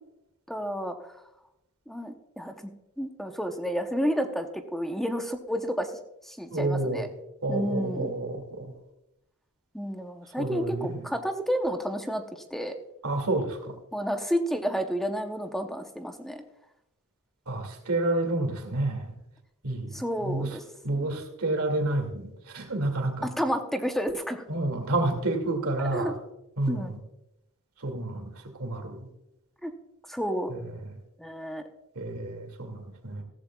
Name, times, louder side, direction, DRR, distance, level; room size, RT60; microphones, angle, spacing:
voice 1, 0.5-1.1 1.9-2.7 3.0-5.9 6.2-7.1 7.5-8.1 9.7-12.7 13.9-16.4 19.9-20.6 21.0-21.1 23.2-24.4 25.9-26.1 26.7-26.9 29.6-29.7 30.1-30.5 31.2-31.6, equal, ahead, 5 dB, 0.7 m, -30 dB
voice 2, 6.5-7.0 7.4-8.7 10.4-11.0 13.0-13.8 17.5-19.1 19.6-20.6 20.8-23.3 24.5-26.1 26.6-27.0 27.8-29.1 32.0-33.2, right 2 dB, 85° right, 4 dB, 2.3 m, -29 dB
15.0 x 14.5 x 2.3 m, 0.88 s
head